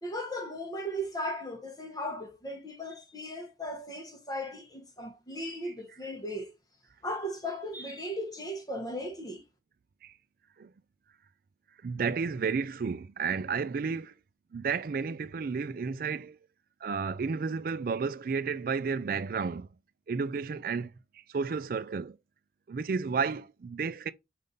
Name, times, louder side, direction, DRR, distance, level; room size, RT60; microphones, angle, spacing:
voice 1, 0.0-6.5 7.0-9.4, equal, 20° left, 0.9 m, -37 dB
voice 2, 11.8-14.1 14.5-16.4 16.8-19.7 20.1-20.9 21.3-22.2 22.7-24.1, right 5 dB, 55° right, 0.4 m, -32 dB
5.2 x 2.5 x 3.9 m
head